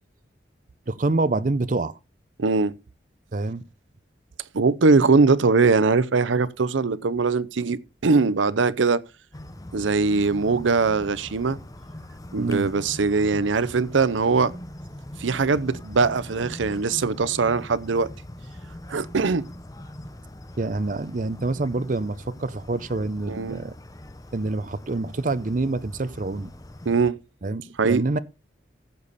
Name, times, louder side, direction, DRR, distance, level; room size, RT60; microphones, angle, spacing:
voice 1, 0.9-1.9 3.3-3.6 12.4-12.7 20.6-23.7 24.3-26.5 27.4-27.6 27.9-28.2, right 2 dB, 45° right, 0.6 m, -26 dB
voice 2, 2.4-2.7 4.5-9.0 9.7-11.6 12.3-14.5 15.2-18.1 18.9-19.5 23.3-23.6 26.9-27.2 27.8-28.0, right 4 dB, 85° right, 0.6 m, -21 dB
sound 1, 9.3-27.1, left 1 dB, 20° left, 0.8 m, -42 dB
15.0 x 6.8 x 4.1 m
head